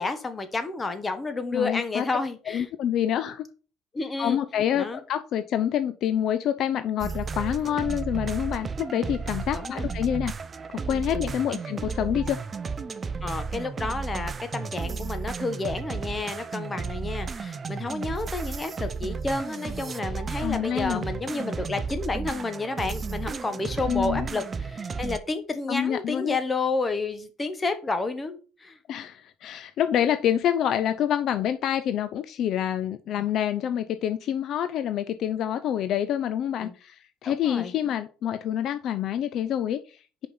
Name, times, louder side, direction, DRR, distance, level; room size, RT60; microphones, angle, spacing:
voice 1, 0.0-2.6 3.9-4.4 4.7-5.0 9.5-9.9 13.2-28.8 36.6-36.7 37.2-37.7, left 3 dB, 20° left, 9 dB, 1.3 m, -30 dB
voice 2, 1.5-2.0 2.5-3.4 4.2-10.3 10.9-12.4 20.4-21.0 23.9-24.3 25.7-26.4 28.9-40.3, left 10 dB, 60° left, 12 dB, 0.5 m, -27 dB
sound 1, 7.0-25.2, right 5 dB, 30° right, 0.6 m, -33 dB
5.4 x 5.3 x 5.5 m, 0.36 s
cardioid pair, 110°, 0 cm